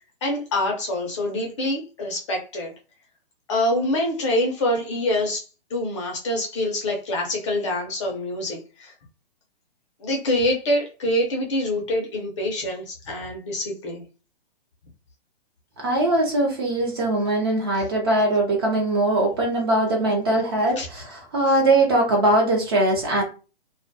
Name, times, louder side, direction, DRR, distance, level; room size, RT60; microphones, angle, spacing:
voice 1, 0.2-2.7 3.5-8.9 10.0-14.0 20.8-20.9, left 1 dB, 30° left, 1 dB, 0.5 m, -25 dB
voice 2, 15.8-23.2, right 1 dB, 25° right, 0 dB, 0.5 m, -21 dB
2.2 x 2.2 x 2.5 m, 0.34 s
hypercardioid pair, 145°, 32 cm